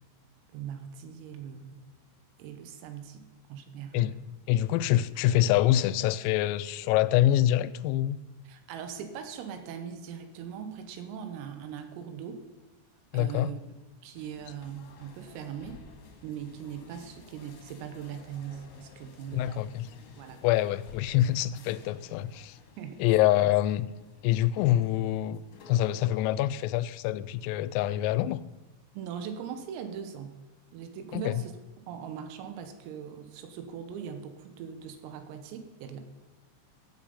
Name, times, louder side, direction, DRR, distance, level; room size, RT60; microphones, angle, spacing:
voice 1, 0.5-1.8 2.4-4.1 8.5-12.5 13.1-13.6 14.0-15.8 16.2-19.6 20.2-20.4 22.8-23.0 28.9-30.4 30.7-31.5 31.9-36.0, right 8 dB, 90° right, 3.9 m, -40 dB
voice 2, 4.5-8.2 13.1-13.5 19.3-19.9 20.4-22.6 23.0-23.9 24.2-28.4 31.1-31.4, left 13 dB, 85° left, 3.2 m, -25 dB
sound 1, 14.1-26.2, left 4 dB, 60° left, 2.4 m, -54 dB
17.0 x 8.9 x 5.5 m
omnidirectional pair, 5.9 m